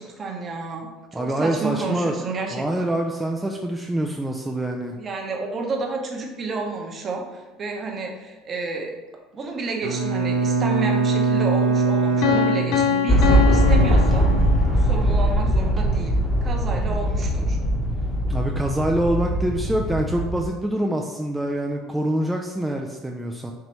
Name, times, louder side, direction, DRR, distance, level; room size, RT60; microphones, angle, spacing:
voice 1, 0.0-2.9 5.0-9.0 9.3-14.4 14.7-17.6, right 3 dB, 40° right, 1 dB, 0.9 m, -30 dB
voice 2, 1.1-2.1 2.5-4.9 18.3-23.5, right 1 dB, 10° right, 1 dB, 0.4 m, -25 dB
Bowed string instrument, 9.8-13.4, right 4 dB, 75° right, 0.6 m, -22 dB
Piano, 12.2-15.0, left 8 dB, 65° left, 0.5 m, -24 dB
sound 1, 13.1-20.5, equal, 15° left, 1.1 m, -21 dB
4.6 x 2.9 x 3.0 m, 1.3 s
hypercardioid pair, 75°, 0 cm